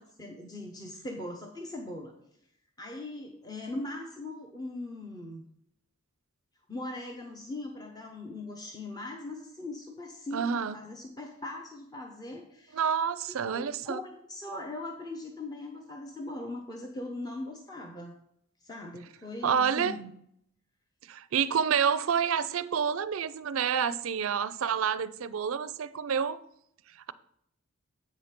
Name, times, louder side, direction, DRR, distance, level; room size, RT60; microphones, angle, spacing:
voice 1, 0.0-2.2 2.8-5.5 6.7-12.8 13.3-18.2 18.6-20.1, left 2 dB, 20° left, 0.8 m, -40 dB
voice 2, 10.3-10.8 12.7-14.0 19.4-20.0 21.0-26.4, right 7 dB, 70° right, 0.4 m, -28 dB
8.3 x 5.2 x 5.8 m
head